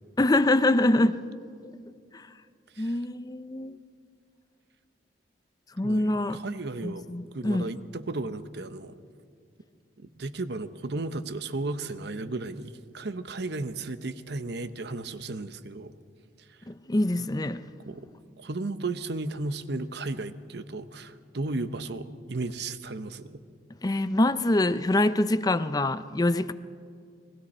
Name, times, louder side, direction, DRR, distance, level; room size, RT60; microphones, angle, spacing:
voice 1, 0.2-1.2 2.1-2.3 2.8-3.8 5.8-6.4 6.8-7.7 16.7-17.6 23.8-26.5, left 1 dB, 20° left, 13 dB, 0.5 m, -25 dB
voice 2, 5.8-7.0 7.3-8.9 10.0-15.9 17.9-18.1 18.4-23.3, right 2 dB, 65° right, 11 dB, 0.9 m, -34 dB
29.5 x 21.0 x 4.3 m, 2.3 s
head